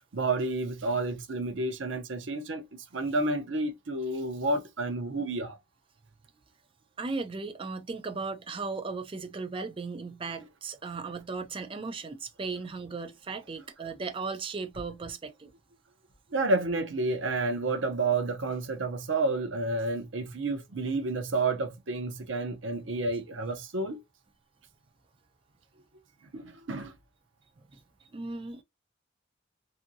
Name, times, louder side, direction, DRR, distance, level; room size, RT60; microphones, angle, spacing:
voice 1, 0.1-2.6 2.9-5.6 16.3-24.0 26.3-26.9, right 2 dB, 80° right, 0.7 m, -30 dB
voice 2, 7.0-15.5 27.7-27.8 28.1-28.6, right 4 dB, 25° right, 0.4 m, -36 dB
2.6 x 2.6 x 2.6 m
head